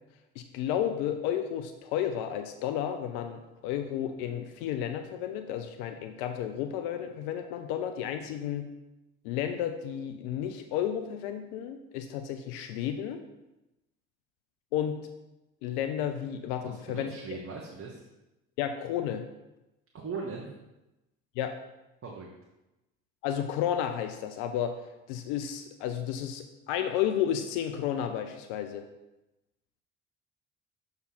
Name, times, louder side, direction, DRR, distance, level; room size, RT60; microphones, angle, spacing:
voice 1, 0.4-8.7 9.2-13.2 14.7-15.0 15.6-17.1 18.6-19.2 21.4-21.5 23.2-24.8 25.1-28.9, left 10 dB, 75° left, 7 dB, 0.6 m, -32 dB
voice 2, 16.6-18.1 19.9-20.5 22.0-22.3, right 4 dB, 35° right, -2 dB, 1.2 m, -39 dB
6.8 x 4.0 x 4.2 m, 0.98 s
hypercardioid pair, 55°, 36 cm